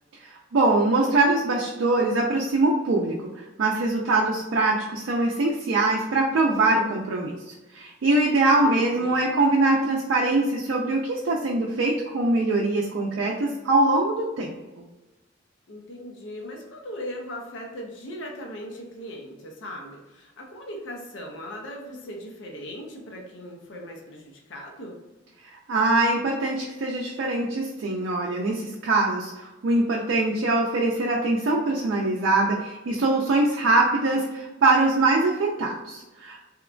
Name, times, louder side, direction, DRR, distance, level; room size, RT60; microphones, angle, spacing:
voice 1, 0.5-3.3 3.6-14.8 25.7-36.5, right 2 dB, 80° right, -2 dB, 0.4 m, -23 dB
voice 2, 8.6-9.3 15.7-25.0, equal, 70° left, 0 dB, 0.5 m, -39 dB
2.8 x 2.1 x 2.4 m, 1.1 s
head